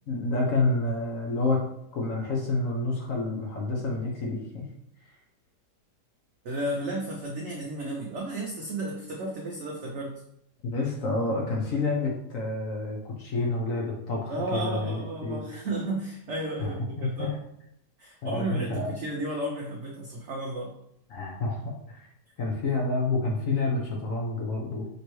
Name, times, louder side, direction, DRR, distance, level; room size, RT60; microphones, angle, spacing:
voice 1, 0.1-1.6 1.9-4.7 10.6-15.4 16.6-17.3 18.2-18.9 21.1-21.6 21.9-22.1 22.4-24.9, left 2 dB, 60° left, 0 dB, 1.0 m, -29 dB
voice 2, 6.4-10.2 14.3-17.4 18.0-20.7, right 1 dB, 60° right, -1 dB, 0.8 m, -33 dB
5.1 x 3.2 x 3.0 m, 0.74 s
omnidirectional pair, 1.8 m